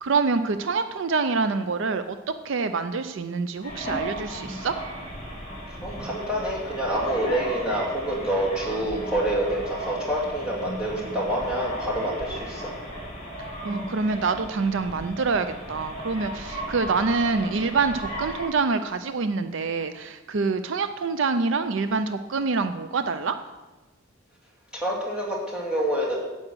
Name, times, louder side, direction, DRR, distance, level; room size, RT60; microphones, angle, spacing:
voice 1, 0.0-2.2 2.4-4.8 13.6-23.4, right 4 dB, 65° right, 10 dB, 0.5 m, -26 dB
sound 1, 3.6-18.4, right 1 dB, 30° left, 4.1 m, -35 dB
voice 2, 5.8-12.7 24.7-26.2, right 1 dB, 5° right, -4 dB, 2.6 m, -27 dB
9.8 x 8.5 x 6.2 m, 1.2 s
head